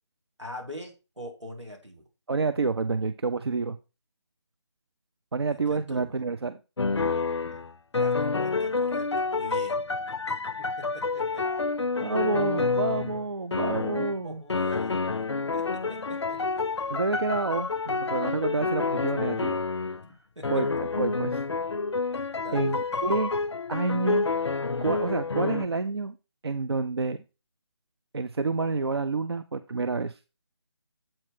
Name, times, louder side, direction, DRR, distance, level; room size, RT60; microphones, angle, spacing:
voice 1, 0.4-2.0 5.5-6.2 8.0-9.8 10.6-10.9 11.1-11.5 14.2-15.1 15.5-16.4 20.4-20.5 22.4-22.8, left 1 dB, 90° right, 3 dB, 2.6 m, -43 dB
voice 2, 2.3-3.8 5.3-6.6 12.0-14.4 16.9-19.6 20.5-21.4 22.5-23.3 23.7-24.3 24.8-26.2 26.4-27.2 28.1-30.2, right 4 dB, 60° right, 11 dB, 0.4 m, -28 dB
sound 1, 6.8-13.3 13.5-14.2 14.5-20.1 20.4-25.6, left 4 dB, 75° left, 0.4 m, -28 dB
7.6 x 4.3 x 4.3 m, 0.30 s
figure-of-eight pair, 155°, 15 cm